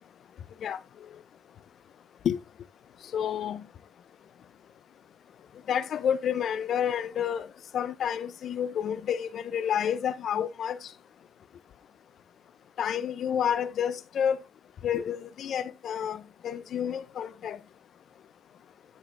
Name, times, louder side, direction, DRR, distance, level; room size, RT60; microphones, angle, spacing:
voice 1, 3.1-3.6 5.7-7.5 7.7-10.8 12.8-14.4 14.8-17.6, left 8 dB, 65° left, 0.7 m, -29 dB
9.6 x 4.5 x 3.8 m
cardioid pair, 90°, 0 cm